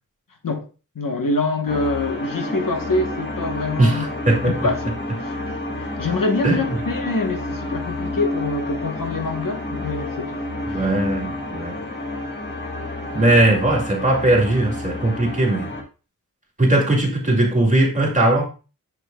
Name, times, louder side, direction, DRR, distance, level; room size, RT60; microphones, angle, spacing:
voice 1, 0.9-4.0 4.4-4.8 5.2-5.3 5.8-10.4 10.7-10.8, left 3 dB, 70° left, 1.0 m, -25 dB
sound 1, 1.7-15.8, left 2 dB, 30° left, 1.4 m, -30 dB
voice 2, 3.8-4.5 6.4-6.6 10.7-11.8 13.1-15.7 16.6-18.5, right 1 dB, 20° right, 2.3 m, -19 dB
7.1 x 6.5 x 2.2 m
wide cardioid pair, 75°, 34 cm